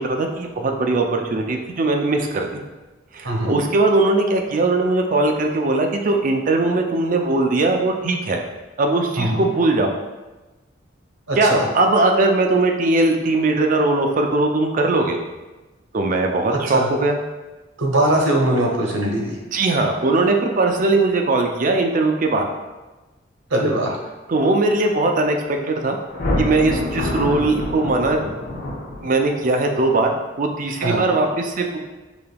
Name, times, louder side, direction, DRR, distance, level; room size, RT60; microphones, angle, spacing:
voice 1, 0.0-2.6 3.1-8.4 8.8-9.9 11.4-15.2 15.9-17.2 19.5-22.5 24.3-25.4 25.6-26.0 26.4-28.2 29.0-31.8, right 2 dB, 45° right, 3 dB, 0.4 m, -20 dB
voice 2, 3.2-3.6 9.2-9.4 11.3-11.6 16.7-16.9 17.8-19.4 23.5-24.0 30.8-31.0, right 1 dB, 90° right, 0 dB, 0.8 m, -20 dB
Thunder, 26.1-29.4, left 1 dB, 45° left, 0.9 m, -26 dB
5.0 x 2.9 x 2.3 m, 1.1 s
head